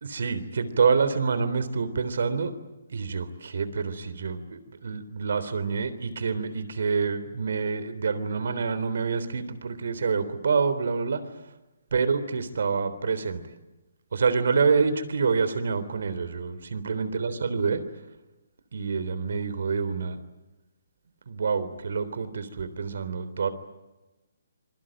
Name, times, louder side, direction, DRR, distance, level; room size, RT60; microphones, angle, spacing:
voice 1, 0.0-2.5 2.9-11.2 11.9-13.4 14.1-17.8 18.7-20.2 21.3-23.5, right 5 dB, 65° right, 13 dB, 3.5 m, -27 dB
27.0 x 23.0 x 9.0 m, 1.1 s
hypercardioid pair, 165°, 0 cm